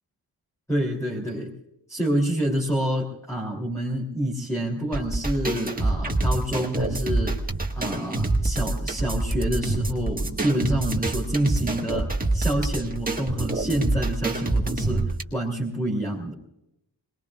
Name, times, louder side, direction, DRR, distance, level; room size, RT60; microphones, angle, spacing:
voice 1, 0.7-1.5 1.9-7.4 7.7-16.3, right 1 dB, 5° left, -2 dB, 3.1 m, -27 dB
sound 1, 4.9-15.2, right 2 dB, 20° right, 1.6 m, -26 dB
26.5 x 21.0 x 2.4 m, 0.83 s
wide cardioid pair, 175°, 41 cm